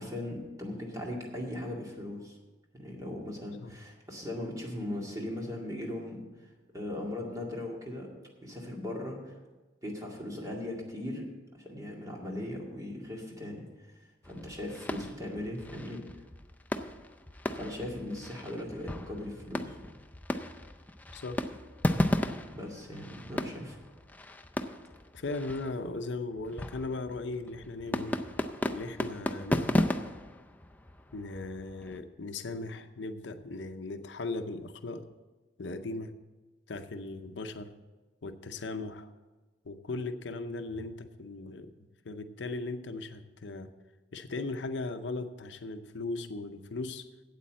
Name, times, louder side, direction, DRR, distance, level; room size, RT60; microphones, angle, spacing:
voice 1, 0.0-2.4 2.7-8.1 8.4-9.4 9.8-11.3 11.6-16.0 17.5-19.8 22.5-23.8, left 1 dB, 20° right, -1 dB, 2.1 m, -39 dB
sound 1, 14.2-32.0, left 1 dB, 10° left, 0.4 m, -35 dB
voice 2, 25.1-28.2 28.7-29.9 31.1-35.1 35.6-36.1 36.7-37.7 38.2-39.1 39.6-41.7 42.0-43.7 44.1-47.1, left 3 dB, 75° left, 8 dB, 0.6 m, -38 dB
8.4 x 8.3 x 7.5 m, 1.2 s
head